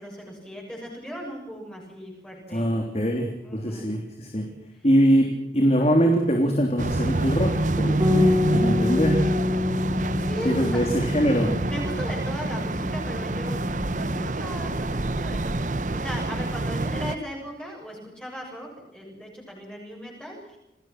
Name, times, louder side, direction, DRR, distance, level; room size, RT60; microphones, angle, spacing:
voice 1, 0.0-2.7 3.4-3.9 10.2-10.8 11.6-13.6 14.0-20.6, equal, 5° left, -2 dB, 7.2 m, -37 dB
voice 2, 2.5-4.5 4.8-9.2 10.4-11.6, equal, 35° left, 2 dB, 3.3 m, -23 dB
sound 1, 6.8-17.2, right 2 dB, 45° right, 0.9 m, -27 dB
Bass guitar, 8.0-14.2, left 2 dB, 20° right, 4.4 m, -27 dB
28.5 x 19.5 x 6.1 m, 0.92 s
head